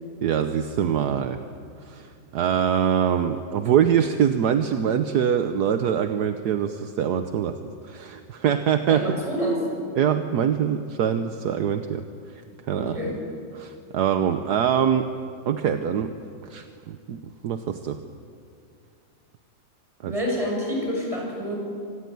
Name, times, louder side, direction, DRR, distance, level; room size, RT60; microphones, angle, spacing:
voice 1, 0.2-1.4 1.8-9.3 10.0-12.4 12.7-13.0 13.5-15.1 15.5-16.1 16.5-18.0 20.0-20.1, right 8 dB, 70° right, 8 dB, 1.4 m, -24 dB
voice 2, 8.9-9.6 12.8-13.2 20.0-21.6, equal, 20° right, -2 dB, 7.3 m, -27 dB
25.5 x 19.5 x 9.4 m, 2.3 s
omnidirectional pair, 1.9 m